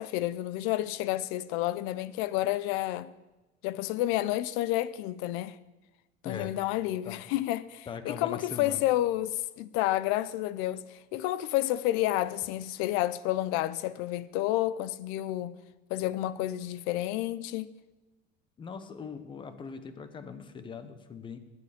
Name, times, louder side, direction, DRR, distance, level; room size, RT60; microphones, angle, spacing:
voice 1, 0.0-3.1 3.6-5.6 6.2-15.6 15.9-17.8, left 15 dB, 75° left, 0.7 m, -30 dB
voice 2, 6.2-6.5 7.0-7.2 7.9-8.8 18.6-21.4, left 6 dB, 25° left, 1.0 m, -41 dB
19.5 x 9.7 x 5.2 m
cardioid pair, 165°, 21 cm